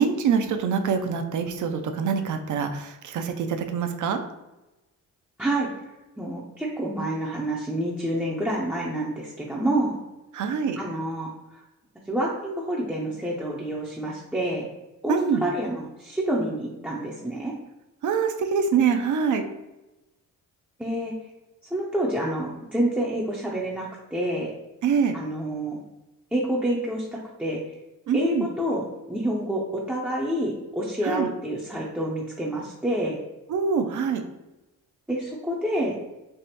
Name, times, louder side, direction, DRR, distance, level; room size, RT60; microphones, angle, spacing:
voice 1, 0.0-4.2 10.3-10.8 15.1-15.4 18.0-19.4 24.8-25.1 28.1-28.5 31.0-31.3 33.5-34.2, right 6 dB, 55° right, 7 dB, 0.5 m, -24 dB
voice 2, 5.4-5.7 6.2-10.0 10.8-11.6 12.1-14.7 15.0-17.5 20.8-21.1 21.7-24.5 25.1-25.8 26.3-27.6 28.1-33.2 35.1-35.9, right 1 dB, 5° right, -4 dB, 0.5 m, -28 dB
3.4 x 2.0 x 2.8 m, 1.0 s
supercardioid pair, 60°, 38 cm